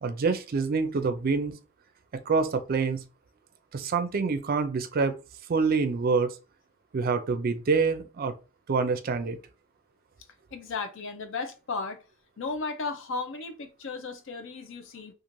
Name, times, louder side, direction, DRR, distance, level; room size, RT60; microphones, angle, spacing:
voice 1, 0.0-1.6 2.3-3.0 3.7-5.1 5.5-6.4 6.9-8.3 8.7-9.4, right 4 dB, 45° right, 0.4 m, -26 dB
voice 2, 10.5-12.0 12.4-15.1, left 4 dB, 65° left, 0.6 m, -35 dB
3.0 x 2.5 x 2.6 m
head